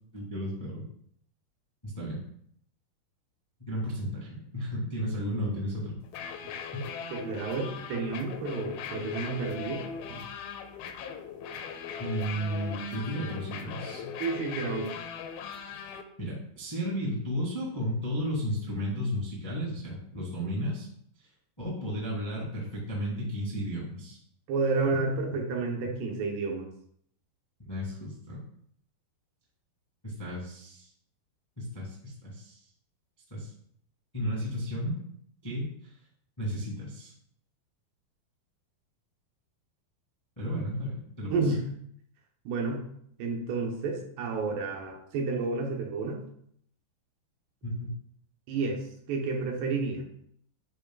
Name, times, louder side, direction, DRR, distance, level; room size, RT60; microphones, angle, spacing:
voice 1, 0.1-0.8 1.8-2.2 3.6-5.9 12.0-14.1 16.2-20.9 21.6-24.2 27.6-28.4 30.0-30.9 31.6-32.6 33.3-33.5 34.1-34.9 35.4-35.7 36.4-37.1 40.4-41.5 47.6-47.9, equal, 15° left, -6 dB, 1.0 m, -33 dB
sound 1, 6.0-16.0, left 7 dB, 80° left, 2.3 m, -39 dB
voice 2, 7.1-10.3 14.2-14.9 24.5-26.7 41.3-41.6 42.5-42.8 43.2-46.2 48.5-50.0, right 4 dB, 85° right, 1 dB, 3.2 m, -31 dB
10.0 x 5.0 x 2.4 m, 0.68 s
omnidirectional pair, 4.6 m